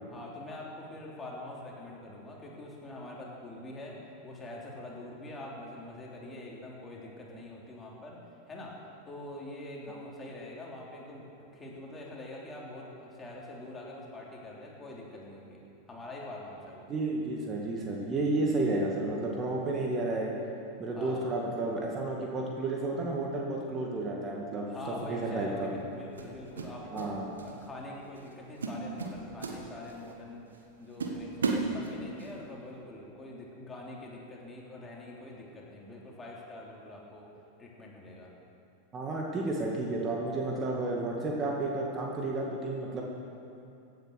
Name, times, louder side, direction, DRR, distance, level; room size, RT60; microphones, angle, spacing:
voice 1, 0.1-8.2 8.5-15.6 15.9-16.9 21.0-21.3 24.7-27.1 27.4-30.5 30.8-37.3 37.6-38.3, left 1 dB, 15° left, -3 dB, 3.5 m, -44 dB
voice 2, 16.9-20.3 20.8-24.7 25.1-25.7 26.9-27.2 38.9-43.0, right 2 dB, 30° right, -1 dB, 2.1 m, -31 dB
sound 1, 24.8-25.1 26.2-27.1 27.4-27.7 28.2-28.3 28.6-30.1 30.5-30.6 31.0-32.3, right 4 dB, 75° right, 1.5 m, -34 dB
16.5 x 9.5 x 6.6 m, 2.6 s
figure-of-eight pair, 90°, 0 cm